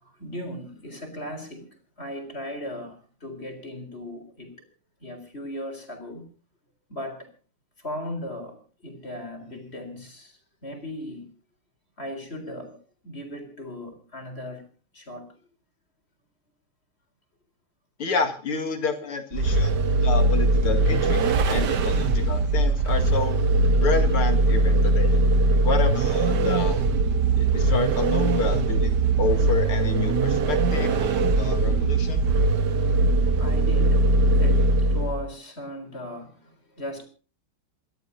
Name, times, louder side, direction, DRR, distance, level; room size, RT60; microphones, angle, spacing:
voice 1, 0.0-4.5 5.0-6.3 6.9-7.3 7.8-11.3 12.0-12.8 13.0-15.3 33.4-37.1, left 1 dB, 30° left, 4.2 m, -37 dB
voice 2, 18.0-19.7 20.0-23.4 23.8-25.2 25.6-26.8 27.3-28.9 29.2-32.3, left 5 dB, 80° left, 3.0 m, -29 dB
Vehicle, 19.3-35.3, right 2 dB, 55° right, 1.7 m, -21 dB
29.0 x 13.5 x 2.7 m
omnidirectional pair, 2.3 m